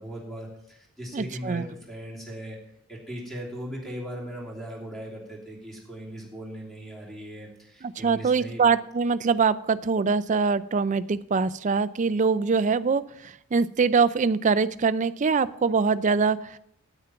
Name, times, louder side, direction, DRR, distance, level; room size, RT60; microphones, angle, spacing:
voice 1, 0.0-2.6 2.9-8.6, equal, ahead, -2 dB, 2.9 m, -38 dB
voice 2, 1.1-1.6 7.8-16.6, right 5 dB, 35° right, 15 dB, 0.4 m, -23 dB
9.6 x 9.0 x 5.7 m, 0.76 s
head